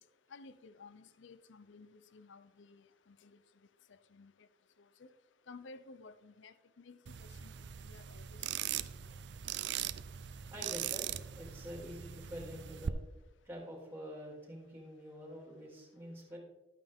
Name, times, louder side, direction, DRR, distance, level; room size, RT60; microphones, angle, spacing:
voice 1, 0.3-3.4 3.9-4.3 5.0-5.1 5.5-7.5 7.8-8.2 8.5-8.8, left 3 dB, 75° left, 13 dB, 0.6 m, -55 dB
sound 1, 7.1-12.9, right 10 dB, 65° right, 0.4 m, -40 dB
voice 2, 10.5-13.0 13.4-16.4, equal, 10° right, -1 dB, 2.7 m, -47 dB
12.0 x 9.2 x 3.5 m, 1.0 s
head